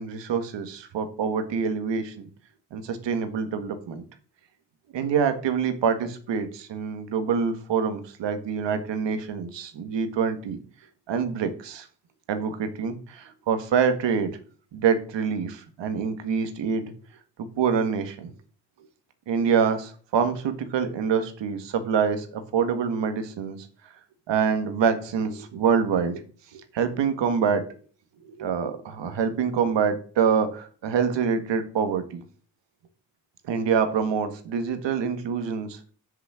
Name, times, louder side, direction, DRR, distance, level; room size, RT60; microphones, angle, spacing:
voice 1, 0.0-2.3 2.7-4.0 4.9-10.6 11.1-11.9 12.3-14.4 14.7-16.8 17.4-18.3 19.3-23.6 24.3-26.2 26.5-27.7 28.2-32.2 33.5-35.8, right 6 dB, 90° right, 8 dB, 1.7 m, -26 dB
7.5 x 7.1 x 6.3 m, 0.42 s
cardioid pair, 55°, 42 cm